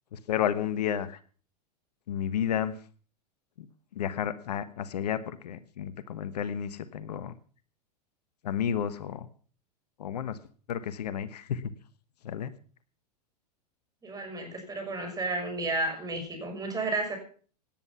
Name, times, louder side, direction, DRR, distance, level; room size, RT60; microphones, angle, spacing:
voice 1, 0.1-1.2 2.1-2.8 3.6-3.7 3.9-7.3 8.4-9.3 10.0-10.4 10.7-11.7 12.2-12.5, left 9 dB, 70° left, 14 dB, 1.3 m, -31 dB
voice 2, 14.0-17.2, right 2 dB, 15° right, 3 dB, 6.3 m, -32 dB
18.0 x 10.5 x 5.9 m, 0.42 s
hypercardioid pair, 100°, 21 cm